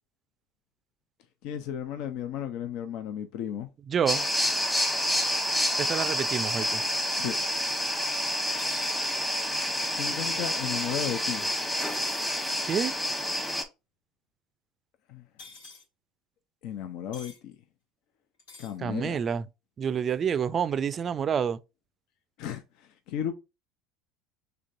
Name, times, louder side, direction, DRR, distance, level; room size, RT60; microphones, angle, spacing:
voice 1, 1.4-3.7 7.1-7.4 9.9-11.5 15.1-15.2 16.6-17.5 18.6-19.2 22.4-23.3, left 9 dB, 65° left, 0.5 m, -34 dB
voice 2, 3.9-4.2 5.8-6.8 12.6-12.9 18.8-19.5 19.8-21.6, right 7 dB, 40° right, 0.4 m, -28 dB
sound 1, 4.1-13.6, equal, 10° left, 1.0 m, -28 dB
sound 2, 8.6-9.0 11.8-12.3 15.4-15.8 17.1-17.4 18.4-18.8, left 3 dB, 90° left, 1.9 m, -46 dB
5.1 x 3.3 x 2.5 m
hypercardioid pair, 85°, 0 cm